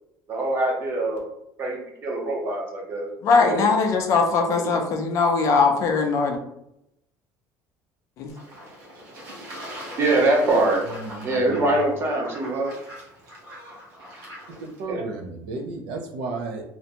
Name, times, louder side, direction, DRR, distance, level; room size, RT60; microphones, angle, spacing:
voice 1, 0.3-1.2 1.6-3.1 3.4-3.7 4.6-4.7 10.0-10.8 11.2-12.7 14.9-15.0, right 2 dB, 30° right, 0 dB, 0.7 m, -23 dB
voice 2, 3.2-6.4 8.2-8.3, left 4 dB, 45° left, 3 dB, 0.4 m, -20 dB
Fowl / Bird / Water, 8.3-14.8, equal, 55° right, 1.1 m, -41 dB
voice 3, 10.9-11.7 14.6-16.6, right 3 dB, 80° right, 3 dB, 0.5 m, -33 dB
2.5 x 2.1 x 2.8 m, 0.81 s
cardioid pair, 170°, 7 cm